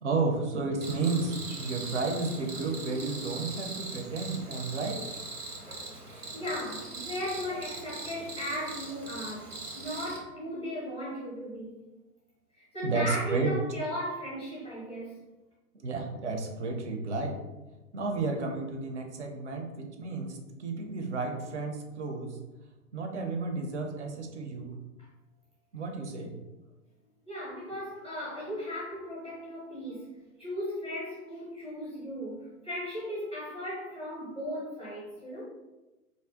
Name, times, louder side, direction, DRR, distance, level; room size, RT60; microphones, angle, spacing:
voice 1, 0.0-5.0 12.8-13.6 15.7-17.4 17.9-22.4 22.9-24.7 25.7-26.3, right 3 dB, 50° right, 3 dB, 0.5 m, -32 dB
Cricket, 0.8-10.2, right 3 dB, 90° right, 0.9 m, -41 dB
voice 2, 5.7-11.8 12.6-15.2 27.2-30.1 30.4-35.4, equal, 10° left, -9 dB, 0.6 m, -37 dB
2.5 x 2.0 x 3.7 m, 1.1 s
figure-of-eight pair, 120°, 45 cm